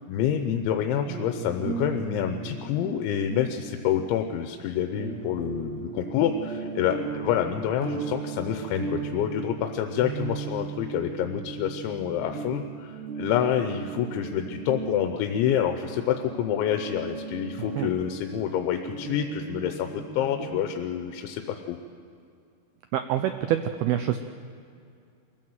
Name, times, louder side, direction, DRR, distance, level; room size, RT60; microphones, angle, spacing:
voice 1, 0.1-21.4 21.7-21.8, left 9 dB, 85° left, 6 dB, 3.2 m, -27 dB
sound 1, 1.1-20.6, right 4 dB, 70° right, 3.5 m, -37 dB
voice 2, 22.9-24.2, right 11 dB, 90° right, 9 dB, 2.2 m, -26 dB
23.5 x 15.0 x 7.9 m, 2.4 s
omnidirectional pair, 5.2 m